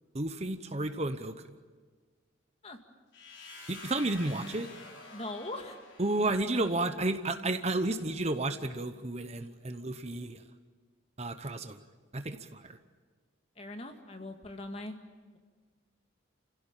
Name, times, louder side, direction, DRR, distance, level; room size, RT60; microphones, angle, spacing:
voice 1, 0.1-1.5 3.7-4.7 6.0-10.4 11.2-11.8 12.1-12.8, right 2 dB, 30° right, 9 dB, 0.9 m, -32 dB
sound 1, 3.1-7.0, left 3 dB, 65° left, 5.1 m, -49 dB
voice 2, 5.1-5.8 13.6-15.0, left 2 dB, 30° left, 5 dB, 2.0 m, -40 dB
30.0 x 16.5 x 9.1 m, 1.5 s
head